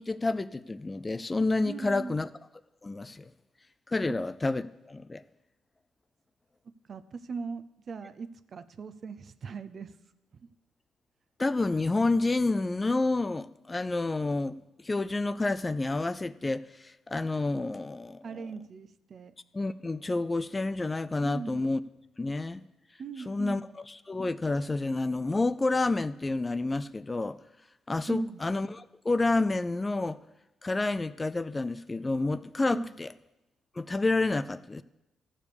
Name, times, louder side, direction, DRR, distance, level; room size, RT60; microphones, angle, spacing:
voice 1, 0.0-2.3 2.8-3.3 3.9-5.2 11.4-18.4 19.5-21.8 22.2-22.7 23.3-23.6 23.9-27.4 27.9-30.2 30.6-33.1 33.8-34.8, left 2 dB, 20° left, 0.4 m, -29 dB
voice 2, 1.6-2.2 4.1-4.2 6.7-9.9 18.2-19.3 21.2-21.6 23.0-23.7 28.1-28.4 32.7-32.9, right 5 dB, 50° right, 0.6 m, -39 dB
14.5 x 4.9 x 6.8 m
cardioid pair, 90°, 0 cm